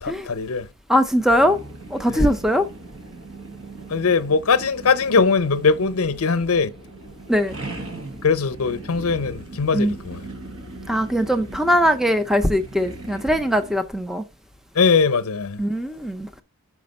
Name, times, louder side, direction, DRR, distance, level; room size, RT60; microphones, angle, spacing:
voice 1, 0.0-0.7 2.1-2.3 3.9-6.7 8.2-10.2 14.7-15.6, left 4 dB, 75° left, 0.7 m, -21 dB
voice 2, 0.9-1.6 1.9-2.7 7.3-7.5 9.7-9.9 10.9-14.2 15.6-16.3, equal, ahead, 0.5 m, -20 dB
sound 1, 1.4-13.8, right 2 dB, 70° right, 1.6 m, -39 dB
6.0 x 5.1 x 5.2 m
head